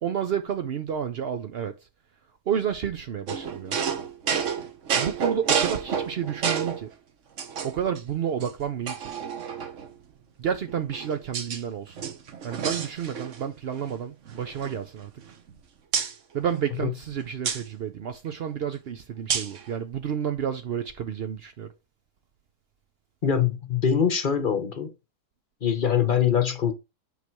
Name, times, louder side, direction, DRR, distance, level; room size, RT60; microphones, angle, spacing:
voice 1, 0.0-1.9 2.5-3.8 4.9-6.9 7.6-9.1 10.4-12.0 12.4-15.2 16.3-21.7, right 8 dB, 75° right, 0.5 m, -30 dB
sound 1, 3.3-6.8 7.4-8.0 8.4-8.5 8.9-9.9 10.7-11.6 11.9-13.5 13.7-13.9 14.3-15.5 15.9-16.1 17.4-17.6 19.3-19.6, right 7 dB, 50° right, 1.1 m, -29 dB
voice 2, 23.2-24.9 25.6-26.7, left 8 dB, 40° left, 0.9 m, -23 dB
8.2 x 3.2 x 4.6 m
omnidirectional pair, 1.8 m